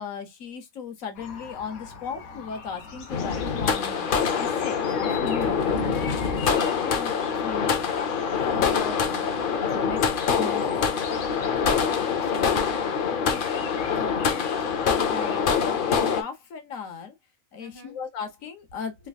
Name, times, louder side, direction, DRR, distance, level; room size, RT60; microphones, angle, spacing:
voice 1, 0.0-4.1 4.3-5.6 5.9-6.2 6.8-9.3 9.6-10.0 10.3-10.7 11.1-11.3 12.0-12.5 13.3-14.7 15.0-17.2 17.5-19.1, left 6 dB, 70° left, 1.3 m, -37 dB
sound 1, 1.2-15.4, left 5 dB, 90° left, 1.2 m, -43 dB
sound 2, 3.1-16.2, left 6 dB, 55° left, 0.6 m, -25 dB
voice 2, 17.6-18.0, left 1 dB, 15° left, 1.3 m, -51 dB
3.4 x 3.1 x 2.3 m
omnidirectional pair, 1.5 m